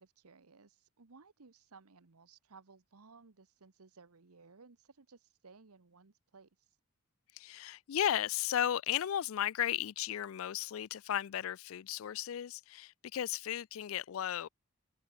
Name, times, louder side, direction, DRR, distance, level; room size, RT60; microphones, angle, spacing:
voice 1, 0.0-6.5, right 4 dB, 85° right, 1.1 m, -59 dB
voice 2, 7.3-14.5, left 10 dB, 65° left, 0.3 m, -35 dB
head